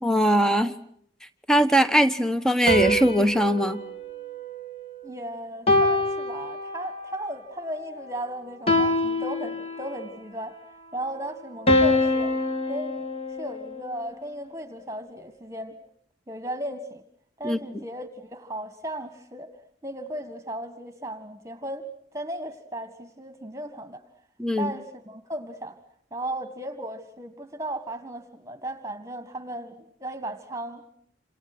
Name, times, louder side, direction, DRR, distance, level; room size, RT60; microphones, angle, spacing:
voice 1, 0.0-0.7 1.5-3.8 17.4-17.6 24.4-24.7, equal, 5° left, 9 dB, 1.3 m, -21 dB
sound 1, 2.7-5.1 5.7-7.1 8.7-10.1 11.7-14.0, left 1 dB, 35° left, 2.8 m, -25 dB
voice 2, 5.0-10.6 10.9-12.3 12.7-15.8 16.3-17.0 17.4-19.5 19.8-21.9 22.1-24.0 24.6-25.8 26.1-30.8, right 1 dB, 15° right, 9 dB, 1.8 m, -36 dB
29.0 x 28.0 x 6.2 m, 0.69 s
head